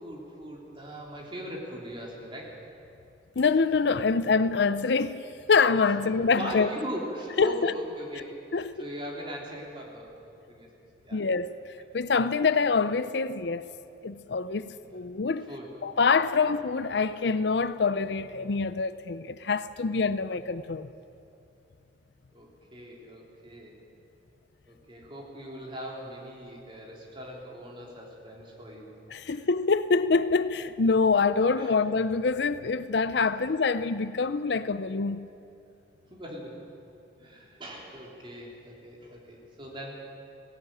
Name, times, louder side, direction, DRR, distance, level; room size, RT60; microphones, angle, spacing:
voice 1, 0.0-2.6 5.9-6.0 6.4-10.2 10.5-10.7 11.0-11.3 14.8-15.0 15.5-15.8 16.3-16.5 22.3-23.8 24.7-28.9 29.2-29.4 31.5-31.7 33.3-33.4 36.1-36.7 37.2-40.0, equal, 30° right, 3.6 m, -40 dB
voice 2, 3.4-6.7 7.4-7.7 8.5-8.9 11.1-11.5 11.9-13.7 14.0-15.5 15.8-20.9 29.1-35.3, left 4 dB, 65° left, 0.6 m, -25 dB
17.5 x 17.0 x 9.2 m
head